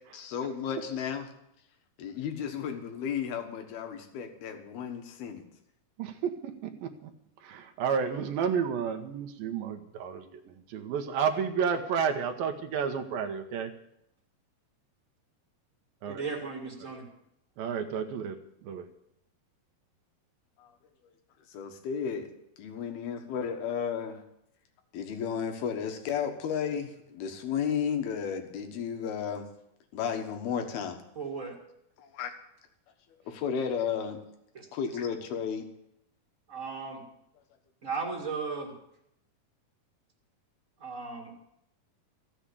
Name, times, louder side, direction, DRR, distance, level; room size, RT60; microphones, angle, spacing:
voice 1, 0.1-1.3 2.0-5.4 20.6-20.7 21.5-22.3 22.6-24.2 24.9-29.5 29.9-31.0 32.0-32.3 33.3-34.2 34.7-35.7, left 7 dB, 80° left, 5 dB, 3.4 m, -33 dB
voice 2, 6.0-7.1 7.4-13.7 16.0-16.2 17.6-18.4 18.6-18.9, right 6 dB, 75° right, 5 dB, 2.8 m, -31 dB
voice 3, 16.0-17.1 31.1-31.5 34.5-34.6 36.5-37.0 37.8-38.7 40.8-41.5, right 4 dB, 30° right, -1 dB, 1.7 m, -36 dB
15.0 x 7.5 x 8.4 m, 0.78 s
omnidirectional pair, 4.4 m